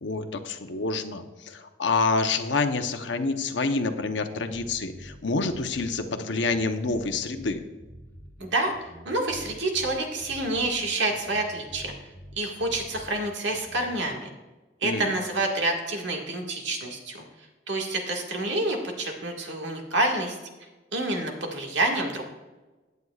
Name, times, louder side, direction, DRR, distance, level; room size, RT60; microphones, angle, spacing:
voice 1, 0.0-7.6 14.8-15.1, left 3 dB, 80° left, 7 dB, 0.9 m, -27 dB
sound 1, 4.5-14.1, equal, 15° left, 1.2 m, -47 dB
voice 2, 8.4-8.7 9.1-11.9 12.4-14.3 14.8-17.2 17.7-20.4 20.9-22.3, right 2 dB, 75° right, 1 dB, 1.9 m, -28 dB
16.0 x 9.4 x 2.4 m, 1.2 s
head